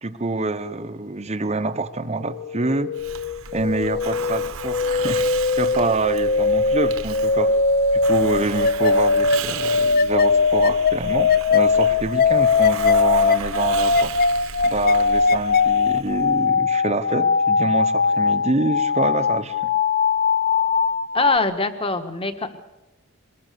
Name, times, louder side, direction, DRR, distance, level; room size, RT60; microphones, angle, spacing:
voice 1, 0.0-2.9 3.5-5.3 5.6-7.5 7.9-14.1 14.6-19.7, right 2 dB, 30° right, 9 dB, 0.8 m, -26 dB
sound 1, 2.2-21.4, left 4 dB, 45° left, 0.7 m, -20 dB
Hiss, 2.9-16.4, right 6 dB, 70° right, 1.2 m, -36 dB
voice 2, 21.1-22.6, left 3 dB, 25° left, 9 dB, 1.4 m, -23 dB
23.0 x 21.0 x 6.8 m, 1.1 s
head